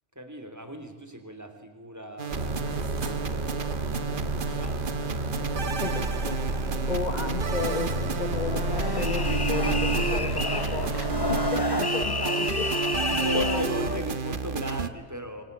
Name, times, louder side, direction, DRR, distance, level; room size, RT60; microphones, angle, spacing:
voice 1, 0.1-4.9 6.6-6.9 11.3-11.9 12.9-15.4, equal, 15° right, 6 dB, 3.3 m, -38 dB
sound 1, 2.2-14.9, right 5 dB, 45° right, 1.3 m, -31 dB
sound 2, 2.3-11.5, right 1 dB, 60° right, 1.8 m, -31 dB
voice 2, 5.8-6.4 6.9-13.6 13.9-14.0, left 4 dB, 35° left, 7 dB, 1.3 m, -34 dB
sound 3, 8.3-14.0, left 3 dB, 20° left, 0.7 m, -31 dB
27.0 x 24.0 x 8.3 m, 1.4 s
omnidirectional pair, 1.3 m